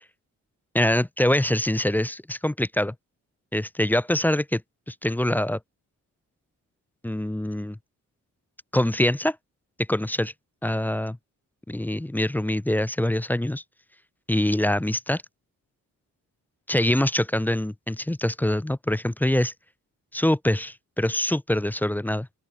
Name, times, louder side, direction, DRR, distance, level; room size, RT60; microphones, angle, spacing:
voice 1, 0.7-2.9 3.5-4.6 4.9-5.6 7.0-7.8 8.7-9.4 9.9-10.3 10.6-11.2 11.7-13.6 14.3-15.2 16.7-19.5 20.1-22.3, left 1 dB, 5° left, 0.5 m, -24 dB
open air
hypercardioid pair, 40°, 39 cm